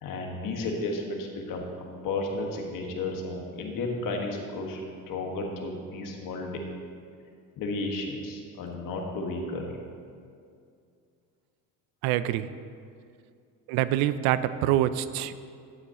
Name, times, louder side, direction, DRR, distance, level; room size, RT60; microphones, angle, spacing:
voice 1, 0.0-1.6 2.0-6.6 7.6-9.7, left 2 dB, 65° left, 1 dB, 1.6 m, -33 dB
voice 2, 12.0-12.5 13.7-15.3, right 12 dB, 80° right, 14 dB, 0.5 m, -25 dB
13.0 x 8.7 x 3.0 m, 2.3 s
cardioid pair, 100°, 36 cm